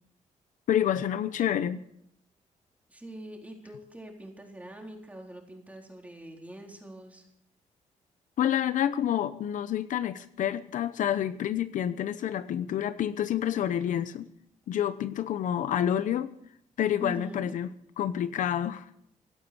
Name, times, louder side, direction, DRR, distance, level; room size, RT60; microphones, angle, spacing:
voice 1, 0.7-1.8 8.4-14.3 14.7-16.3 16.8-17.7 18.0-18.9, left 10 dB, 75° left, 0.9 m, -28 dB
voice 2, 2.9-7.2 17.0-17.5, right 1 dB, 10° right, 4.0 m, -43 dB
17.0 x 11.5 x 6.9 m
cardioid pair, 110°, 13 cm